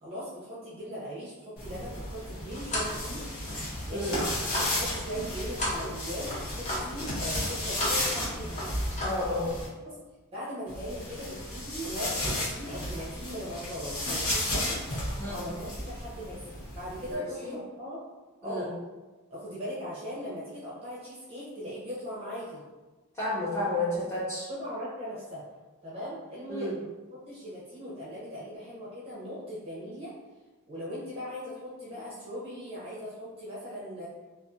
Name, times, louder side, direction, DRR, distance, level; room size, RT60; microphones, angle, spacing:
voice 1, 0.0-3.3 3.9-4.3 4.7-8.6 9.8-10.0 10.3-14.8 15.3-18.0 18.4-18.7 19.3-22.6 24.5-25.4 25.8-26.9 27.3-30.1 30.7-34.1, equal, 25° right, -8 dB, 0.6 m, -39 dB
sound 1, 1.6-9.7 10.7-17.1, left 1 dB, 75° left, 0.9 m, -34 dB
sound 2, 2.0-3.0 3.4-5.2 5.6-7.0 7.5-8.1 8.4-9.1, left 1 dB, 30° left, 0.5 m, -35 dB
voice 2, 9.0-9.5 15.2-15.5 17.1-17.6 18.4-18.7 23.1-24.5 26.5-26.7, left 1 dB, 10° left, -10 dB, 1.0 m, -31 dB
2.5 x 2.4 x 2.4 m, 1.2 s
head